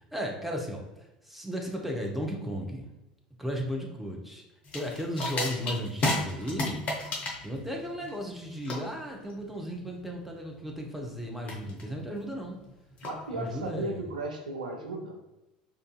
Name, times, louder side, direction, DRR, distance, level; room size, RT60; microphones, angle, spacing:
voice 1, 0.1-0.8 1.2-2.9 3.4-4.4 4.7-6.8 7.4-12.6 13.3-14.0, equal, 5° right, 0 dB, 0.6 m, -35 dB
sound 1, 4.7-13.7, left 2 dB, 35° left, 0.7 m, -35 dB
voice 2, 13.0-15.1, right 2 dB, 75° right, 2 dB, 0.4 m, -35 dB
3.7 x 2.5 x 2.3 m, 0.99 s
figure-of-eight pair, 70°, 4 cm